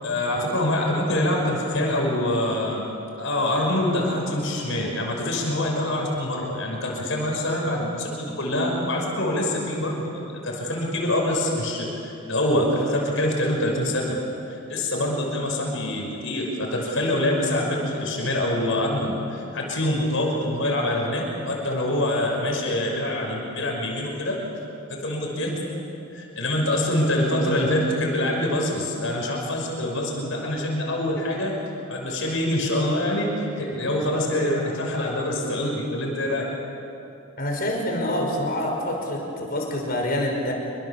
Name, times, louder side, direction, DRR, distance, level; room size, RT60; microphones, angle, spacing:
voice 1, 0.0-2.9 3.2-14.2 14.5-24.4 24.9-25.6 26.1-31.5 31.9-36.4, left 1 dB, 60° left, -1 dB, 5.8 m, -25 dB
voice 2, 37.4-40.5, left 1 dB, 40° left, 0 dB, 5.4 m, -26 dB
27.5 x 24.5 x 7.3 m, 2.9 s
head